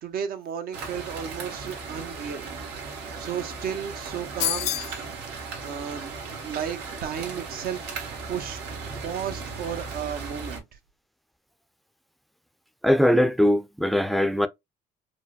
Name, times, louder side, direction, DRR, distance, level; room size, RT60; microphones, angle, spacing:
voice 1, 0.0-2.4 3.2-4.8 5.4-6.1 6.4-7.8 8.3-8.6 9.0-10.6, right 8 dB, 60° right, 1.0 m, -33 dB
sound 1, 0.7-10.6, right 4 dB, 90° right, 1.6 m, -37 dB
sound 2, 4.4-5.0, left 15 dB, 85° left, 0.6 m, -27 dB
voice 2, 12.8-14.5, equal, ahead, 0.5 m, -21 dB
4.6 x 2.2 x 2.4 m
cardioid pair, 110°, 17 cm